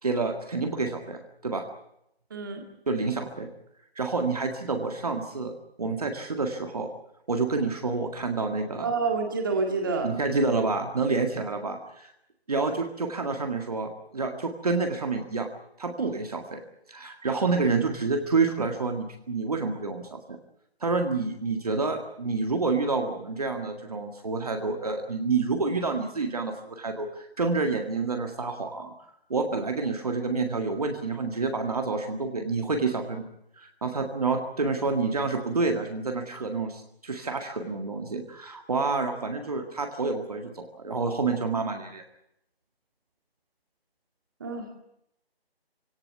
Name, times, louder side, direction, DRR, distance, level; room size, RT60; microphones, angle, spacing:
voice 1, 0.0-1.7 2.9-3.5 4.0-5.5 5.8-6.9 7.3-8.9 10.0-12.1 12.5-15.5 15.8-16.6 16.9-20.4 20.8-28.9 29.3-33.3 33.6-42.0, right 4 dB, 40° right, 4 dB, 1.9 m, -28 dB
voice 2, 2.3-2.6 8.8-10.1 44.4-44.7, right 4 dB, 20° right, 4 dB, 2.1 m, -28 dB
22.5 x 17.5 x 9.4 m, 0.80 s
figure-of-eight pair, 175°, 31 cm